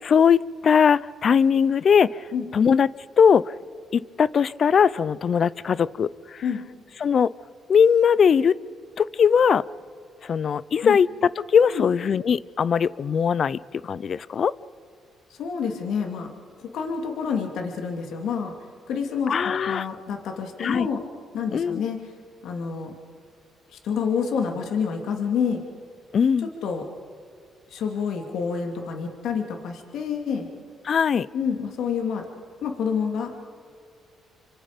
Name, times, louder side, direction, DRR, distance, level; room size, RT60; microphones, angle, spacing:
voice 1, 0.0-3.5 3.9-6.4 7.0-7.3 7.7-8.6 9.0-9.6 10.2-14.5 19.3-19.9 20.6-20.9 21.5-21.9 26.1-26.5 30.8-31.3, left 7 dB, 50° left, 21 dB, 0.5 m, -20 dB
voice 2, 15.3-16.3 16.6-18.5 18.9-21.0 21.3-22.0 22.4-22.9 23.7-25.6 26.6-26.8 27.7-30.5 31.3-32.2 32.6-33.3, left 6 dB, 75° left, 3 dB, 2.7 m, -28 dB
28.5 x 25.5 x 5.2 m, 2.2 s
cardioid pair, 90°, 0 cm